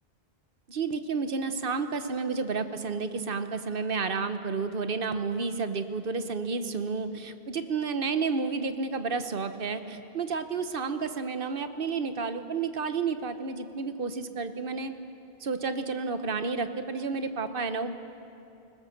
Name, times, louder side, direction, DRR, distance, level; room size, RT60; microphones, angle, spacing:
voice 1, 0.7-14.9 15.4-18.0, right 4 dB, 60° right, 10 dB, 1.1 m, -31 dB
21.5 x 19.5 x 6.6 m, 2.7 s
omnidirectional pair, 1.1 m